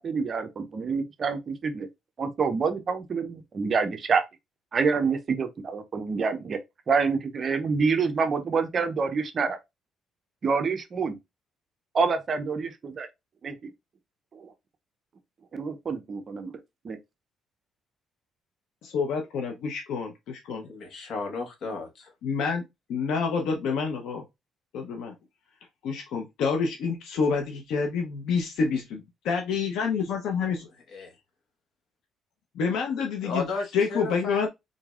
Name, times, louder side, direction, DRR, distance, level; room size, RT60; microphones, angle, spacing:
voice 1, 0.0-1.9 2.2-4.2 4.7-6.6 6.9-9.6 10.4-11.2 11.9-13.1 13.4-13.5 14.3-14.5 15.5-16.6 16.8-17.0, right 5 dB, 40° right, 0.5 m, -27 dB
voice 2, 18.8-20.7 22.2-22.6 22.9-24.2 24.7-25.1 25.8-30.7 32.6-33.4 33.7-34.5, left 5 dB, 80° left, 0.7 m, -28 dB
voice 3, 20.6-22.1 30.9-31.1 33.2-34.5, left 3 dB, 55° left, 1.2 m, -34 dB
3.8 x 3.1 x 2.4 m
cardioid pair, 120°, 0 cm